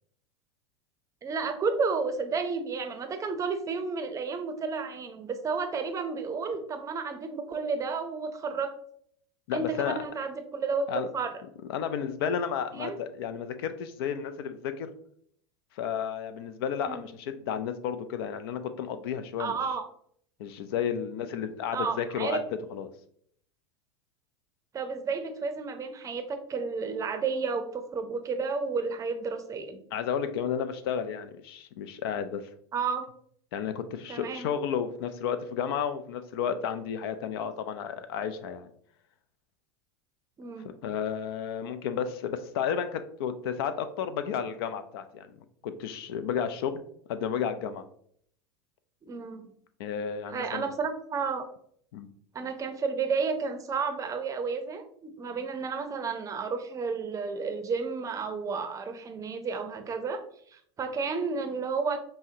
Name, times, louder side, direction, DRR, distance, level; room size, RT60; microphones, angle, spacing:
voice 1, 1.2-8.8 9.5-10.8 11.1-11.3 12.7-13.0 16.9-17.1 19.4-19.9 21.7-22.4 24.7-29.8 32.7-33.1 34.1-34.5 40.4-40.7 49.0-49.4 50.3-51.5 52.3-62.0, right 5 dB, 25° right, 7 dB, 0.6 m, -32 dB
voice 2, 9.5-10.0 10.9-11.1 11.7-14.9 15.8-19.6 20.4-22.4 22.7-22.9 29.9-32.4 33.5-38.7 40.6-45.3 45.6-46.8 47.1-47.8 49.8-50.7 51.9-52.1, left 7 dB, 65° left, 10 dB, 0.5 m, -32 dB
5.5 x 2.1 x 2.7 m, 0.64 s
hypercardioid pair, 95°, 13 cm